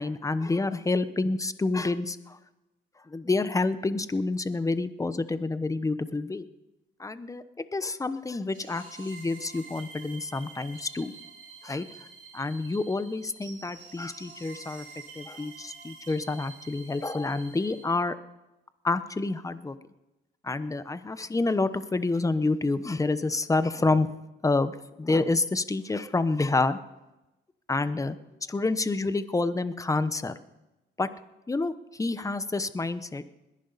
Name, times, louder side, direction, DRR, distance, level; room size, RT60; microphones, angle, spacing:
voice 1, 0.0-2.4 3.1-6.4 7.0-7.4 7.7-11.1 11.6-12.1 12.3-14.9 15.1-18.2 18.8-19.8 20.4-24.1 24.4-24.7 25.0-26.8 27.7-28.2 28.5-30.3 31.0-31.1 31.5-33.2, left 3 dB, 15° left, 13 dB, 0.8 m, -28 dB
sound 1, 8.5-17.8, right 5 dB, 45° right, 6.7 m, -48 dB
21.0 x 11.0 x 4.1 m, 0.96 s
cardioid pair, 90°, 20 cm